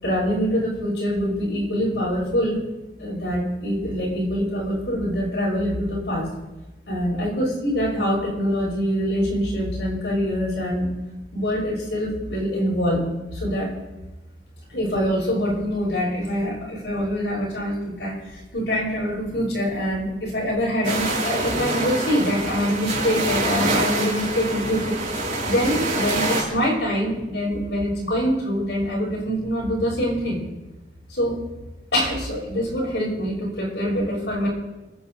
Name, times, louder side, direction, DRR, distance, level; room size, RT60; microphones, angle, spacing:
voice 1, 0.0-2.6 3.0-6.3 6.9-11.0 11.3-13.0 13.3-13.7 14.7-18.2 18.5-25.0 25.5-30.4 31.1-31.4 31.9-34.5, equal, 80° left, -4 dB, 5.7 m, -24 dB
sound 1, 20.8-26.4, right 2 dB, 45° right, 4.7 m, -25 dB
28.5 x 9.7 x 4.0 m, 1.1 s
head